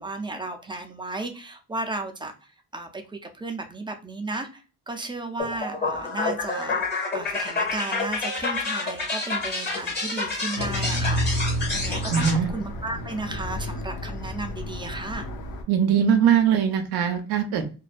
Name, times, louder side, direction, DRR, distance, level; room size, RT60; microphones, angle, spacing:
voice 1, 0.0-2.3 2.7-4.6 4.9-6.9 7.1-15.3, right 2 dB, 15° right, 4 dB, 0.4 m, -34 dB
sound 1, 5.4-12.3, left 3 dB, 30° left, 1.0 m, -29 dB
sound 2, 10.6-15.6, equal, 75° left, 0.6 m, -30 dB
voice 2, 12.1-12.5 15.7-17.7, right 8 dB, 85° right, 5 dB, 0.5 m, -21 dB
2.5 x 2.1 x 2.4 m, 0.33 s
cardioid pair, 105°, 36 cm